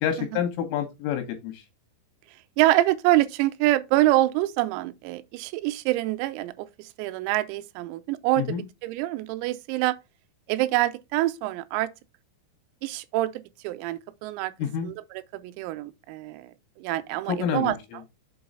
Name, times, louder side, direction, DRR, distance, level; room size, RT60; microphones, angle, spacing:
voice 1, 0.0-1.6 8.4-8.7 14.6-14.9 17.3-17.8, left 8 dB, 75° left, 3.6 m, -28 dB
voice 2, 2.6-10.0 10.5-11.9 12.8-14.5 14.8-17.8, right 16 dB, 90° right, 3.3 m, -26 dB
7.6 x 3.9 x 5.4 m
omnidirectional pair, 6.0 m